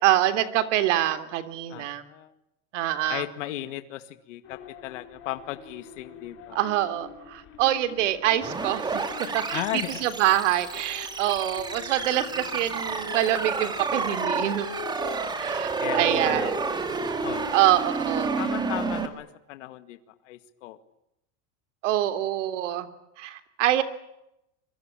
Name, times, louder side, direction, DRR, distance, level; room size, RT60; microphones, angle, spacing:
voice 1, 0.0-2.0 2.7-3.2 6.5-14.7 15.0-16.5 17.5-18.4 21.8-22.9 23.2-23.8, right 13 dB, 65° right, 11 dB, 3.4 m, -25 dB
voice 2, 1.7-2.3 3.1-6.6 9.5-10.1 15.8-16.8 17.2-17.5 18.4-20.0 20.2-20.8, left 15 dB, 65° left, 10 dB, 2.2 m, -36 dB
sound 1, 4.4-19.1, left 8 dB, 35° left, 3.6 m, -44 dB
sound 2, 8.4-19.1, right 4 dB, 10° right, 2.2 m, -30 dB
27.0 x 23.5 x 9.0 m, 0.83 s
supercardioid pair, 170°, 39 cm